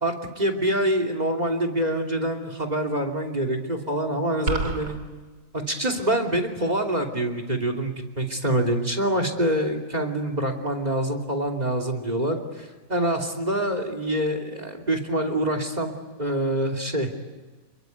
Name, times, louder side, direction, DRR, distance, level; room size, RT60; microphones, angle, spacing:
voice 1, 0.0-5.0 5.5-15.9 16.2-17.1, right 1 dB, 20° right, 6 dB, 3.0 m, -26 dB
sound 1, 4.5-4.9, right 2 dB, 50° right, 3.3 m, -27 dB
27.0 x 22.5 x 9.5 m, 1.2 s
omnidirectional pair, 2.2 m